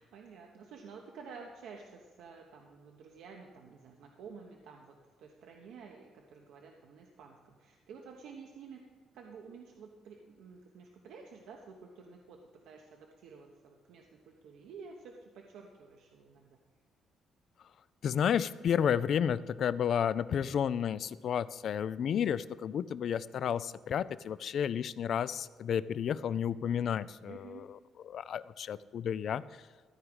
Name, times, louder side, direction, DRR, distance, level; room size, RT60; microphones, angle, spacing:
voice 1, 0.0-8.8 9.1-12.4 12.6-16.6 27.2-27.7, right 5 dB, 80° right, 1 dB, 1.1 m, -51 dB
voice 2, 18.0-27.8 28.0-29.4, left 8 dB, 55° left, 17 dB, 0.4 m, -31 dB
14.0 x 4.8 x 8.9 m, 1.5 s
cardioid pair, 125°, 0 cm